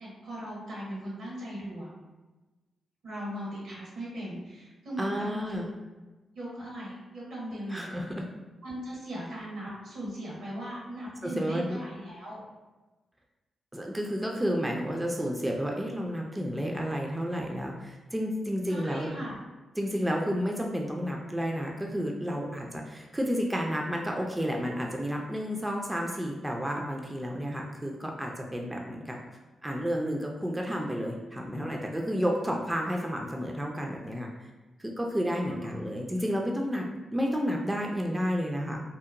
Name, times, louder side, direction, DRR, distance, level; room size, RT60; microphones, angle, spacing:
voice 1, 0.0-1.9 3.0-5.6 6.3-7.9 8.6-12.4 18.7-19.4 35.5-35.7, equal, 80° right, -5 dB, 1.1 m, -38 dB
voice 2, 5.0-5.7 7.7-8.2 11.2-11.8 13.7-19.1 19.8-29.2 29.6-34.3 34.8-38.8, equal, 15° right, 0 dB, 0.4 m, -31 dB
2.8 x 2.0 x 2.5 m, 1.2 s
cardioid pair, 55°, 0 cm